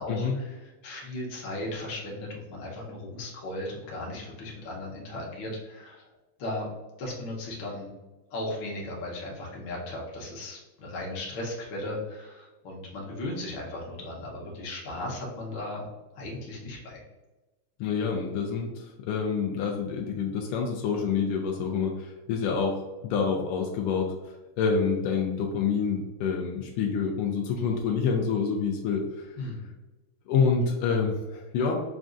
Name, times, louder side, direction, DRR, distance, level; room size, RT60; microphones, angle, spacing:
voice 1, 0.0-6.0 6.4-6.7 7.0-7.9 8.3-15.9 16.1-17.0 29.4-29.7, left 1 dB, 65° left, -3 dB, 1.7 m, -36 dB
voice 2, 17.8-24.1 24.6-29.3 30.3-31.8, left 5 dB, 85° left, 1 dB, 1.5 m, -27 dB
6.1 x 2.3 x 2.5 m, 1.1 s
omnidirectional pair, 2.4 m